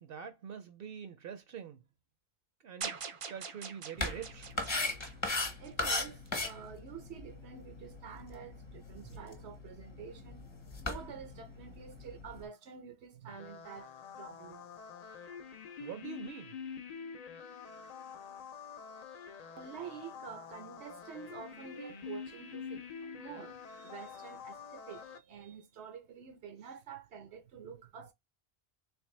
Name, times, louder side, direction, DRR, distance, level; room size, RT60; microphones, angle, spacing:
voice 1, 0.0-1.8 2.6-2.9 3.3-4.5 15.8-16.5, right 7 dB, 65° right, 0.7 m, -44 dB
sound 1, 2.8-6.1, right 6 dB, 50° right, 0.4 m, -44 dB
sound 2, 4.0-12.5, left 2 dB, 30° left, 0.8 m, -39 dB
voice 2, 5.6-10.5 10.8-14.6 19.6-28.1, right 7 dB, 85° right, 1.0 m, -48 dB
sound 3, 13.3-25.2, left 6 dB, 55° left, 0.5 m, -47 dB
3.3 x 3.2 x 3.1 m
omnidirectional pair, 1.1 m